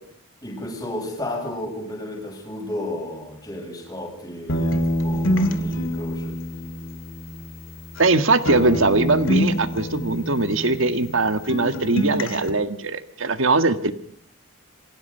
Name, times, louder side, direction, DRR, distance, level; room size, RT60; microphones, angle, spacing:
voice 1, 0.4-6.4, left 1 dB, 15° left, -1 dB, 7.3 m, -33 dB
sound 1, 4.5-8.2 8.5-11.2 11.5-12.5, equal, 70° left, 2.5 m, -26 dB
voice 2, 8.0-13.9, right 3 dB, 70° right, 10 dB, 1.7 m, -21 dB
27.5 x 25.0 x 5.7 m, 0.63 s
head